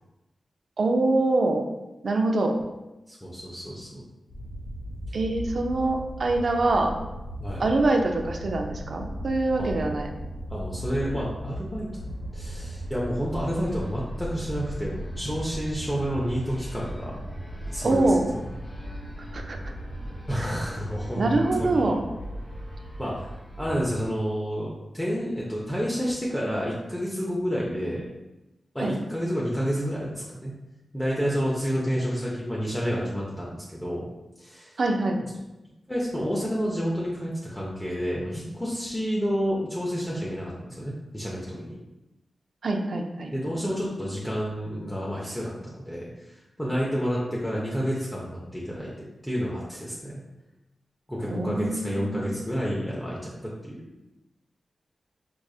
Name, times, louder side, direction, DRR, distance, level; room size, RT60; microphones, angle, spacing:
voice 1, 0.8-1.6 2.0-2.6 5.1-6.9 7.6-10.1 17.8-18.2 19.3-19.6 20.4-20.5 21.2-22.0 28.8-28.9 34.8-35.2 42.6-43.3 51.3-52.3, right 2 dB, 60° right, 3 dB, 0.4 m, -24 dB
voice 2, 3.1-4.0 5.1-5.2 7.4-7.7 9.6-9.9 10.5-17.2 17.7-18.4 20.3-21.9 23.0-23.3 23.6-28.1 28.7-30.5 30.9-34.1 34.4-34.7 35.9-41.8 43.3-50.2 51.1-53.9, equal, 10° left, -5 dB, 0.6 m, -30 dB
sound 1, 4.3-24.1, equal, 35° left, 1.0 m, -37 dB
4.8 x 2.5 x 2.4 m, 1.0 s
wide cardioid pair, 85°, 0 cm